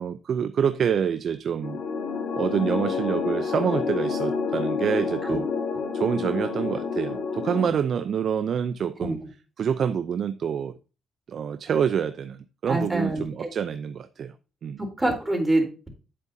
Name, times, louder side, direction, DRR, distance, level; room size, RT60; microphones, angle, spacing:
voice 1, 0.0-1.8 2.3-5.5 5.9-9.2 9.6-10.7 11.3-14.3 14.6-14.8, right 7 dB, 60° right, 0.5 m, -27 dB
sound 1, 1.6-7.7, left 5 dB, 65° left, 1.6 m, -28 dB
voice 2, 12.7-13.5 15.0-15.9, right 1 dB, 15° right, 3.6 m, -25 dB
10.0 x 7.9 x 2.7 m
cardioid pair, 90°, 0 cm